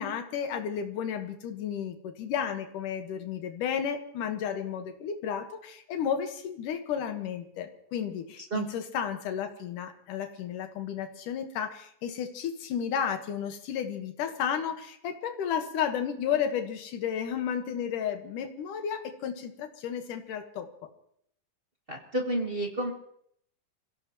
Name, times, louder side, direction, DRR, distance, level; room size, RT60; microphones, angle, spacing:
voice 1, 0.0-20.7, left 8 dB, 80° left, 6 dB, 2.9 m, -33 dB
voice 2, 21.9-22.9, right 2 dB, 50° right, 0 dB, 0.6 m, -30 dB
26.5 x 16.5 x 3.0 m, 0.69 s
omnidirectional pair, 3.7 m